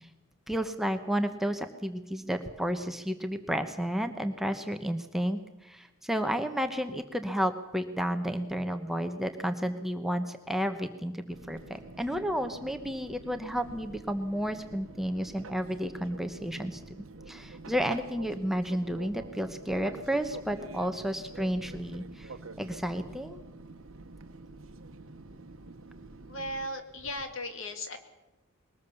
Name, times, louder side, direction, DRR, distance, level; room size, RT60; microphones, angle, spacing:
voice 1, 0.5-16.8 17.3-23.4, equal, ahead, 7 dB, 0.9 m, -32 dB
Fixed-wing aircraft airplane, 11.3-26.7, right 3 dB, 65° right, 1.2 m, -47 dB
voice 2, 26.3-28.0, left 1 dB, 60° left, 7 dB, 2.4 m, -36 dB
22.0 x 19.5 x 7.0 m, 1.0 s
head